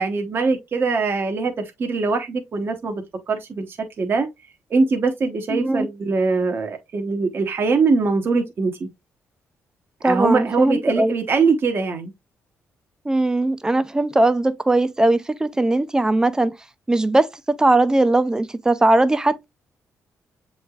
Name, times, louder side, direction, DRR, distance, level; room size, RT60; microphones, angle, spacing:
voice 1, 0.0-4.3 4.7-8.9 10.0-12.1, right 4 dB, 45° right, 0.8 m, -22 dB
voice 2, 5.5-5.9 10.0-11.1 13.1-16.5 16.9-19.4, right 2 dB, 10° right, 0.4 m, -19 dB
7.0 x 3.1 x 2.3 m
cardioid pair, 105°, 5 cm